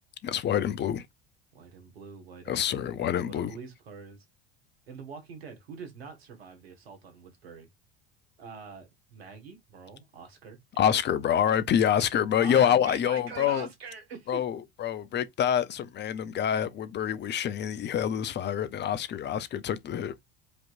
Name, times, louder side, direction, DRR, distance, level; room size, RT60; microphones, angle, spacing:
voice 1, 0.2-1.1 2.5-3.5 10.8-13.7 14.3-20.2, left 9 dB, 35° left, 0.7 m, -27 dB
voice 2, 1.5-4.2 4.9-7.7 8.4-10.9 12.4-14.4, right 5 dB, 85° right, 1.6 m, -44 dB
5.1 x 3.0 x 2.6 m
hypercardioid pair, 80°, 30 cm